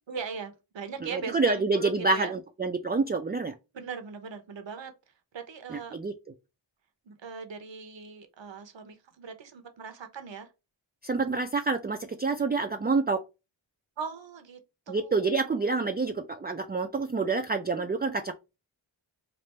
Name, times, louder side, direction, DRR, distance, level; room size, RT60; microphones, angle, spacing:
voice 1, 0.1-2.3 3.7-4.9 5.3-6.0 7.0-10.5 14.0-14.6 14.9-16.1, right 5 dB, 70° right, 0.8 m, -40 dB
voice 2, 1.1-3.5 5.7-6.1 11.0-13.2 14.9-18.3, right 3 dB, 20° right, 0.4 m, -27 dB
3.3 x 2.5 x 4.2 m
wide cardioid pair, 55°, 46 cm